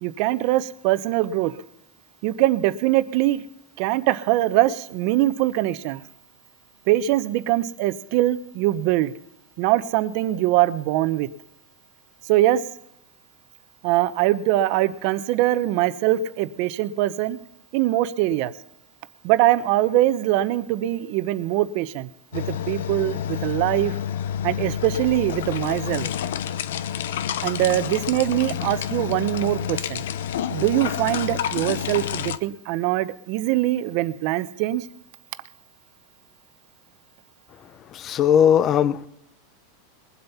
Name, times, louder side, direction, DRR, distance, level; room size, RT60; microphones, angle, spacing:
voice 1, 0.0-1.5 2.2-3.4 3.8-6.0 6.9-9.1 9.6-11.3 12.3-12.6 13.8-17.4 17.7-18.5 19.2-23.9 24.4-26.1 27.4-30.1 30.5-34.9, right 15 dB, 50° right, 13 dB, 0.8 m, -22 dB
sound 1, 22.3-32.4, left 9 dB, 85° left, 0.7 m, -29 dB
voice 2, 37.9-39.1, left 9 dB, 30° left, 18 dB, 0.6 m, -18 dB
22.0 x 8.0 x 5.7 m, 0.76 s
supercardioid pair, 155°, 0 cm